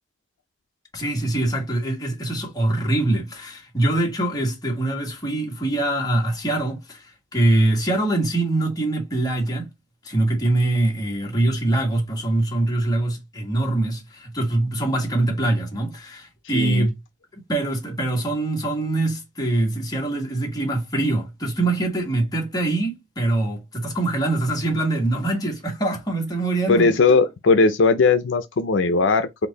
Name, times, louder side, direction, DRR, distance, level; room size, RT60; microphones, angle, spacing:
voice 1, 0.9-9.7 10.0-17.0 17.3-26.9, right 2 dB, 20° left, 1.5 m, -23 dB
voice 2, 16.5-16.9 26.7-29.5, left 4 dB, 75° left, 0.5 m, -18 dB
4.4 x 2.6 x 3.9 m
head